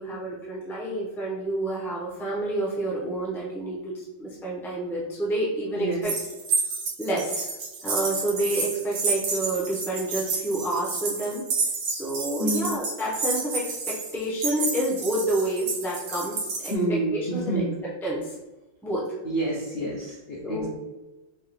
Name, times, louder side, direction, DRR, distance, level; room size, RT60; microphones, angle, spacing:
voice 1, 0.0-6.1 7.0-7.5 7.8-11.4 11.9-17.6 18.0-18.3 18.8-19.0 20.4-20.7, right 1 dB, ahead, -5 dB, 0.4 m, -29 dB
voice 2, 5.8-6.2 12.4-12.7 16.7-17.7 19.2-20.7, right 1 dB, 65° left, -4 dB, 0.6 m, -28 dB
sound 1, 6.0-16.7, right 4 dB, 60° right, 1.0 m, -30 dB
4.6 x 2.4 x 3.2 m, 1.1 s
omnidirectional pair, 2.0 m